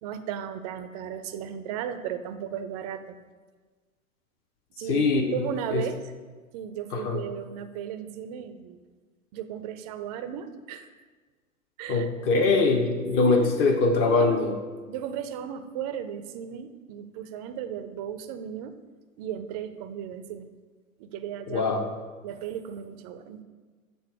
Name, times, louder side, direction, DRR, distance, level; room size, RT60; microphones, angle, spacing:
voice 1, 0.0-3.2 4.8-5.0 5.3-6.0 6.5-8.8 9.3-10.9 11.8-12.1 12.4-12.6 13.3-13.6 14.0-14.5 14.9-18.7 19.2-20.5 21.0-21.8 22.2-23.4, right 9 dB, 30° right, 10 dB, 0.4 m, -35 dB
voice 2, 4.8-5.9 6.9-7.2 11.9-14.6 21.5-21.9, left 3 dB, 40° left, 4 dB, 0.8 m, -23 dB
6.9 x 3.7 x 4.7 m, 1.4 s
hypercardioid pair, 105°, 41 cm